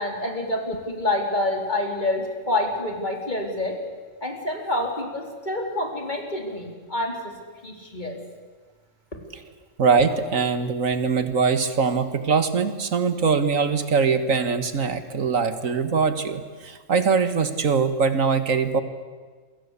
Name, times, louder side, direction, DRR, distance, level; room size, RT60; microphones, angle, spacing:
voice 1, 0.0-3.8 4.2-7.3 7.6-8.2, left 1 dB, 35° left, 3 dB, 4.2 m, -27 dB
voice 2, 9.8-18.8, right 5 dB, 85° right, 10 dB, 2.1 m, -22 dB
28.5 x 23.5 x 8.4 m, 1.4 s
omnidirectional pair, 1.3 m